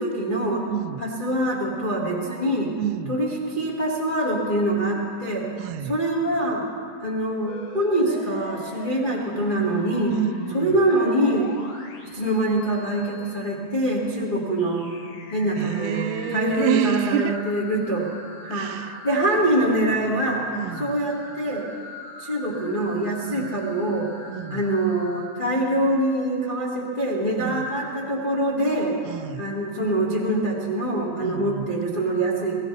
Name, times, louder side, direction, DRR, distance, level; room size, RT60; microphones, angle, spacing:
voice 1, 0.0-0.6 1.0-2.7 3.1-5.5 5.8-6.6 7.0-10.1 10.5-11.5 12.0-14.8 15.3-18.1 18.4-20.5 20.8-21.7 22.2-24.1 24.5-29.0 29.4-32.6, right 1 dB, 45° left, -4 dB, 0.6 m, -24 dB
voice 2, 0.7-1.0 2.8-3.2 5.6-6.0 10.1-10.8 15.6-17.4 18.5-19.0 20.5-21.0 23.3-23.5 24.3-24.6 27.4-27.7 29.1-29.5 31.2-31.7, right 10 dB, 80° right, 10 dB, 2.5 m, -29 dB
sound 1, 7.5-13.4 14.6-25.3, left 2 dB, 75° left, 3.9 m, -42 dB
22.5 x 16.0 x 3.3 m, 2.2 s
omnidirectional pair, 4.6 m